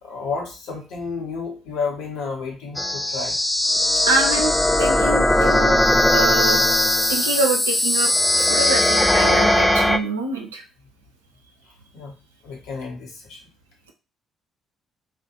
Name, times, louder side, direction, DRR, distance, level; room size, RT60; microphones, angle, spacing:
voice 1, 0.0-3.4 11.9-12.1 12.4-13.4, left 4 dB, 60° left, 0 dB, 0.9 m, -31 dB
sound 1, 2.8-10.0, left 1 dB, 10° left, 0.3 m, -19 dB
voice 2, 4.1-5.8 6.1-6.7 7.1-10.6, right 3 dB, 80° right, 2 dB, 0.4 m, -25 dB
2.4 x 2.1 x 2.7 m, 0.31 s
figure-of-eight pair, 45°, 0 cm